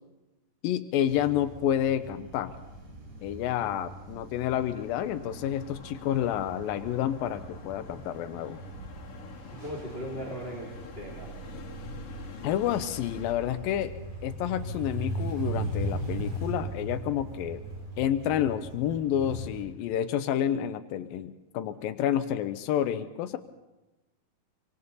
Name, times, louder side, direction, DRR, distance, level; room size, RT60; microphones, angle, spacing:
voice 1, 0.6-2.6 3.2-8.6 12.4-17.6 18.0-23.4, left 10 dB, 90° left, 9 dB, 2.6 m, -29 dB
sound 1, 1.0-19.6, right 1 dB, 55° right, 8.4 m, -39 dB
sound 2, 2.0-12.5, right 2 dB, 35° right, 1.2 m, -54 dB
sound 3, 4.5-13.3, left 7 dB, 70° left, 3.5 m, -49 dB
voice 2, 9.5-11.3, equal, 15° right, -3 dB, 3.4 m, -38 dB
26.5 x 25.0 x 4.1 m, 1.0 s
omnidirectional pair, 4.0 m